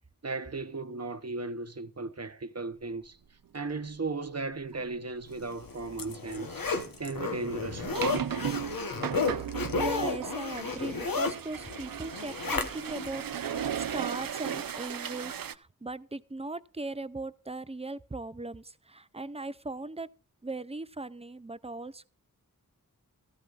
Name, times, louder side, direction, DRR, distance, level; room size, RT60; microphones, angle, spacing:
voice 1, 0.2-3.2 3.5-6.6 7.0-8.1, right 3 dB, 45° right, 1.0 m, -36 dB
sound 1, 4.7-4.9 5.3-5.6 6.7-15.5, right 8 dB, 75° right, 0.6 m, -36 dB
Zipper (clothing), 5.5-13.1 13.5-13.6, left 4 dB, 75° left, 1.2 m, -33 dB
voice 2, 9.8-20.1 20.4-22.1, right 2 dB, 20° right, 0.5 m, -39 dB
16.0 x 14.5 x 2.5 m
wide cardioid pair, 65°, 35 cm